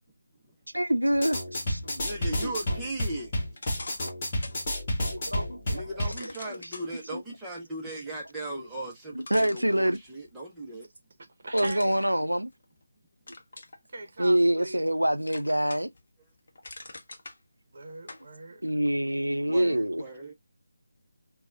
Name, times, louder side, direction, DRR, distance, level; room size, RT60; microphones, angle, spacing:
voice 1, 0.7-2.0 2.4-2.5 5.1-5.8 6.2-6.6 7.1-7.2 9.1-10.0 11.5-12.5 14.2-15.9 18.6-20.0, right 1 dB, 80° right, 0.5 m, -26 dB
sound 1, 1.1-6.2, left 1 dB, 25° left, 1.4 m, -31 dB
voice 2, 2.0-3.3 4.4-4.5 5.7-10.9 19.5-20.3, right 1 dB, 5° right, 0.8 m, -37 dB
sound 2, 3.5-4.6 5.1-5.2 6.0-6.9 8.7-8.8 9.2-10.3 11.5-12.8 13.3-13.8 14.3-15.0 15.3-16.0 16.3-17.4 18.1-18.3, left 2 dB, 45° left, 0.7 m, -44 dB
voice 3, 11.2-12.0 13.9-14.8 17.7-18.6, right 2 dB, 40° right, 0.9 m, -41 dB
4.0 x 2.3 x 2.4 m
figure-of-eight pair, 155°, 0 cm